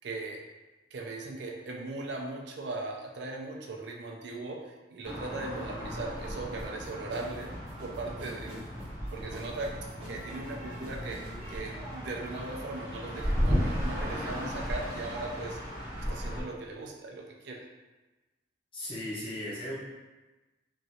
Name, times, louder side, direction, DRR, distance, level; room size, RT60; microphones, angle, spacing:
voice 1, 0.0-0.4 0.9-7.5 7.8-8.6 9.1-11.2 11.5-15.6 16.0-17.6, right 2 dB, 65° right, 0 dB, 0.4 m, -39 dB
sound 1, 5.0-16.4, equal, 50° left, 1.1 m, -35 dB
sound 2, 6.6-12.9, left 1 dB, 30° right, 0.7 m, -49 dB
voice 2, 18.7-19.7, left 1 dB, 25° left, -7 dB, 0.8 m, -36 dB
3.0 x 2.5 x 2.7 m, 1.1 s
head